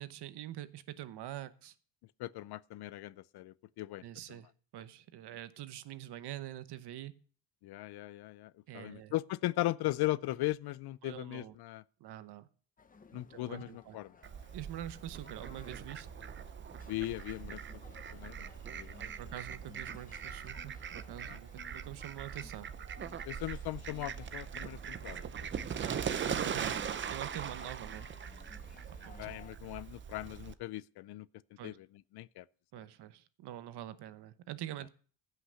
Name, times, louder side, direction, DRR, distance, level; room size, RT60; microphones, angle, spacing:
voice 1, 0.0-1.7 4.0-7.1 8.7-9.1 11.0-11.5 12.0-12.5 13.1-14.0 14.5-16.1 19.0-22.7 25.8-28.1 28.9-29.4 31.6-31.8 32.7-34.9, right 13 dB, 65° right, 1.0 m, -45 dB
voice 2, 2.2-4.0 7.6-11.8 13.1-14.1 16.8-17.6 18.1-18.9 21.3-21.4 23.3-25.7 29.2-31.3 31.6-31.9 32.1-32.5, left 17 dB, 65° left, 0.5 m, -38 dB
sound 1, 12.8-29.5, left 5 dB, 20° left, 0.6 m, -58 dB
Fowl, 14.2-30.5, right 7 dB, 30° right, 0.5 m, -41 dB
15.5 x 5.8 x 6.3 m
cardioid pair, 160°, 43 cm